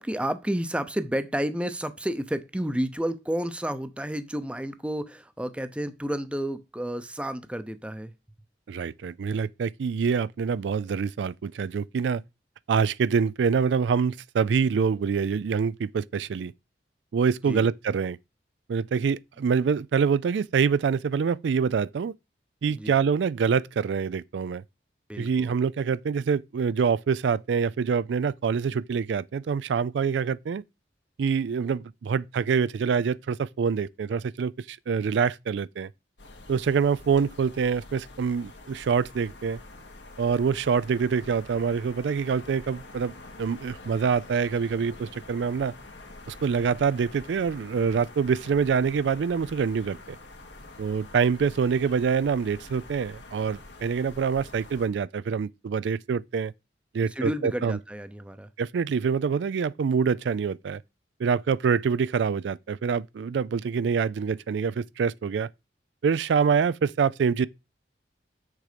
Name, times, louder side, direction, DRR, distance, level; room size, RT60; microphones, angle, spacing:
voice 1, 0.0-8.1 17.5-17.7 22.7-22.9 25.1-25.6 57.1-58.5, equal, 5° right, 0.7 m, -31 dB
voice 2, 8.7-12.2 12.7-16.5 17.1-18.2 18.7-22.1 22.6-24.6 25.2-30.6 31.2-35.9 36.5-39.6 40.2-43.1 43.4-45.7 46.3-50.0 50.8-56.5 56.9-57.8 58.6-60.8 61.2-65.5 66.0-67.5, right 6 dB, 80° right, 0.4 m, -25 dB
sound 1, 36.2-54.9, left 2 dB, 90° left, 2.0 m, -46 dB
7.4 x 6.6 x 5.1 m
head